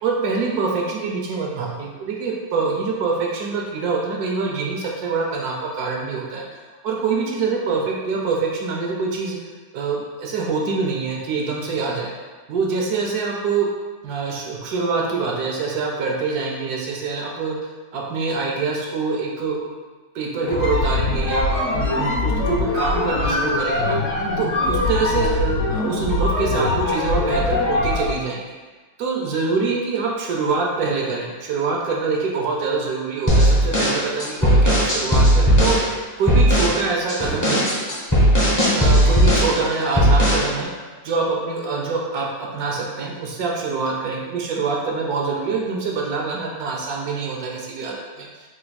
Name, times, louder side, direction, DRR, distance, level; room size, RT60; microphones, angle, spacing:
voice 1, 0.0-6.4 6.8-9.4 9.7-12.1 12.5-13.7 14.0-17.6 17.9-19.7 20.1-24.0 24.4-28.4 29.0-35.8 36.2-37.6 38.6-40.7 41.0-48.4, right 4 dB, 70° right, -1 dB, 1.0 m, -25 dB
sound 1, 20.4-28.2, left 2 dB, 60° left, 0.9 m, -22 dB
sound 2, 33.3-35.8 36.3-36.8 37.1-39.6 40.0-40.5, equal, 20° left, 0.5 m, -16 dB
3.2 x 2.5 x 4.0 m, 1.4 s
omnidirectional pair, 1.8 m